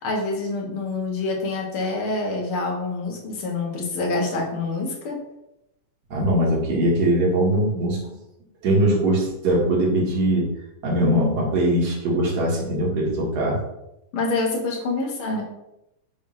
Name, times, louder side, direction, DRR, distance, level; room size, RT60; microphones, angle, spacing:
voice 1, 0.0-5.2 14.1-15.4, left 3 dB, 50° left, -1 dB, 1.9 m, -26 dB
voice 2, 6.1-8.1 8.6-10.5 10.8-13.6, right 1 dB, 55° right, -3 dB, 2.7 m, -21 dB
6.4 x 3.5 x 5.7 m, 0.86 s
omnidirectional pair, 3.6 m